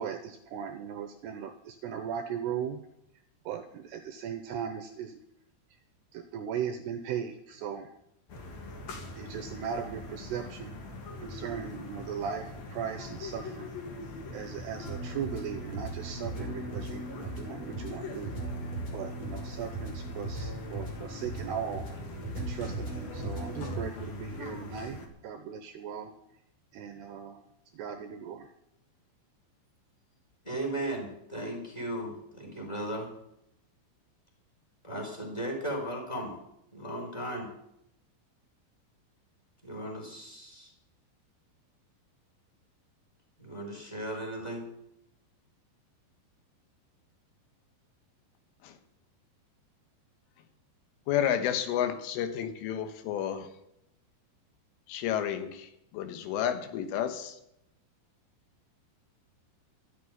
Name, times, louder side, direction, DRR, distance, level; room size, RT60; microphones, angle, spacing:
voice 1, 0.0-2.8 3.5-5.2 6.1-7.9 9.2-10.7 11.2-13.7 14.3-18.3 18.9-21.9 22.4-26.1 26.7-27.4 27.7-28.5, right 7 dB, 80° right, 8 dB, 2.5 m, -38 dB
sound 1, 8.3-25.1, left 2 dB, 55° left, 3.5 m, -43 dB
sound 2, 14.8-23.8, right 2 dB, 40° left, 3.0 m, -38 dB
voice 2, 30.4-33.1 34.8-36.3 36.7-37.5 39.6-40.7 43.4-44.7, right 1 dB, 5° left, 1 dB, 3.8 m, -36 dB
voice 3, 51.1-53.5 54.9-57.4, left 9 dB, 85° left, 8 dB, 3.8 m, -31 dB
13.0 x 8.4 x 9.8 m, 0.79 s
omnidirectional pair, 5.6 m